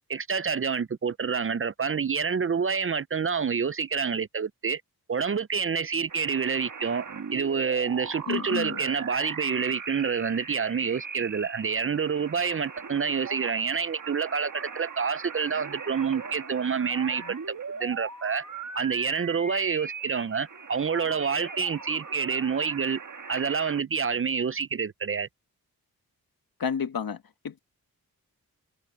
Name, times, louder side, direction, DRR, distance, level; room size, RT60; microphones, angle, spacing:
voice 1, 0.1-4.8 5.1-7.1 7.3-17.5 17.8-18.4 18.7-23.0 23.3-25.3, right 6 dB, 35° right, 0.5 m, -28 dB
sound 1, 6.1-23.8, right 5 dB, 55° right, 1.8 m, -40 dB
voice 2, 8.3-8.8 26.6-27.2 27.4-27.6, left 7 dB, 70° left, 1.5 m, -30 dB
wide cardioid pair, 80°, 37 cm